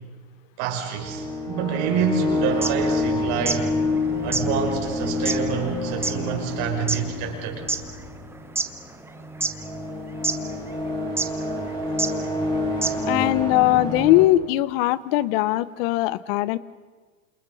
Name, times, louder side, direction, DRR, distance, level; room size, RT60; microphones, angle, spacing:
voice 1, 0.6-3.7 4.2-7.6, right 7 dB, 45° right, 1 dB, 6.5 m, -27 dB
sound 1, 1.0-14.2, left 2 dB, 10° left, 5.1 m, -28 dB
sound 2, 2.5-3.7 3.9-4.0 4.3-7.9 8.3-9.1 9.4-9.9 10.2-10.4 11.2-11.4 12.0-12.1 12.4-12.5 12.8-13.2, right 3 dB, 5° right, 1.0 m, -27 dB
voice 2, 13.0-16.6, left 16 dB, 50° left, 18 dB, 1.1 m, -20 dB
29.5 x 27.5 x 5.7 m, 1.4 s
supercardioid pair, 150°, 37 cm